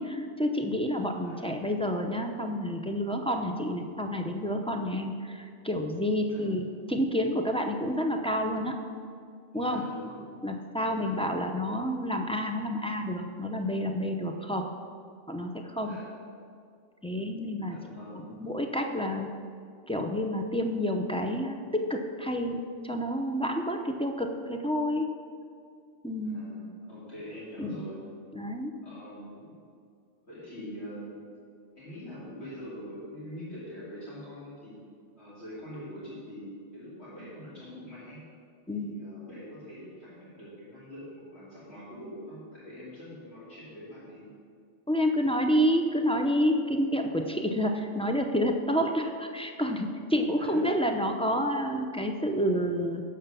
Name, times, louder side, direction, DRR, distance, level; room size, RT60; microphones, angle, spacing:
voice 1, 0.0-8.8 9.5-9.8 10.4-14.7 15.3-16.0 17.0-17.8 18.4-19.3 19.9-25.1 26.0-26.4 27.6-27.8 28.3-28.7 38.7-39.0 44.9-53.0, equal, 10° left, 3 dB, 0.4 m, -29 dB
voice 2, 9.5-10.2 10.9-11.1 15.8-16.1 17.7-18.3 26.2-28.0 28.8-29.5 30.2-31.2 31.8-34.8 35.2-38.2 38.7-44.3 50.3-50.6, equal, 60° left, -10 dB, 3.2 m, -44 dB
11.5 x 5.0 x 6.9 m, 2.2 s
omnidirectional pair, 1.3 m